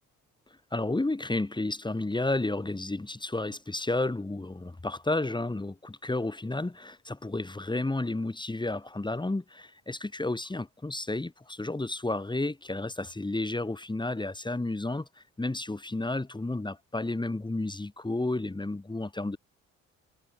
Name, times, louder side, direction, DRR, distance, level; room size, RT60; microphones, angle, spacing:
voice 1, 0.7-19.4, left 2 dB, 15° left, 5.5 m, -32 dB
cardioid pair, 90°, 30 cm